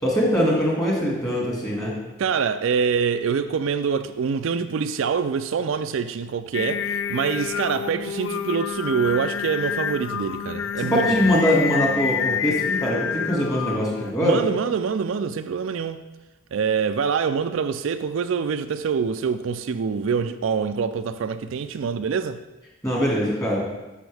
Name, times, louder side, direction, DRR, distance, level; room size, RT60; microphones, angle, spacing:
voice 1, 0.0-1.9 11.0-14.4 22.8-23.6, equal, 15° left, 2.0 m, -22 dB
voice 2, 2.2-11.3 14.2-16.0 16.5-22.4, right 6 dB, 65° right, 0.3 m, -25 dB
Singing, 6.5-14.1, left 7 dB, 60° left, 0.3 m, -28 dB
12.5 x 5.6 x 3.4 m
head